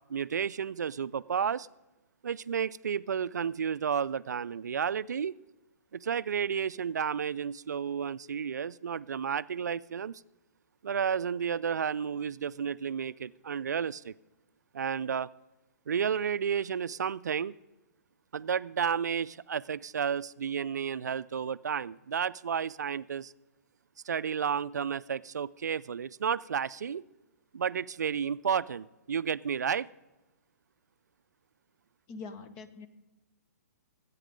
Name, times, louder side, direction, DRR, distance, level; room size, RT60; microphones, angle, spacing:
voice 1, 0.1-1.7 2.2-5.4 5.9-10.2 10.8-14.1 14.7-15.3 15.9-17.5 18.3-23.3 24.0-27.0 27.5-29.9, right 7 dB, 80° right, 0.4 m, -32 dB
voice 2, 32.1-32.9, left 4 dB, 30° left, 1.1 m, -43 dB
19.0 x 8.4 x 5.2 m
hypercardioid pair, 130°, 9 cm